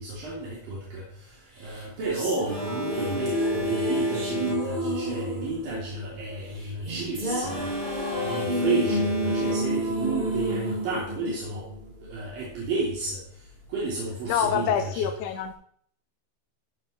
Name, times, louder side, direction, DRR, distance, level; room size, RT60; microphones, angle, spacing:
voice 1, 0.0-11.7 12.0-15.1, right 3 dB, 70° right, -6 dB, 4.6 m, -32 dB
sound 1, 1.6-12.0, right 1 dB, 20° right, 1.2 m, -30 dB
Alarm, 2.5-5.0 7.5-10.0, left 5 dB, 15° left, 1.4 m, -34 dB
voice 2, 8.8-9.4 14.2-15.5, left 8 dB, 70° left, 6 dB, 2.3 m, -27 dB
13.5 x 7.9 x 4.3 m, 0.63 s
omnidirectional pair, 4.2 m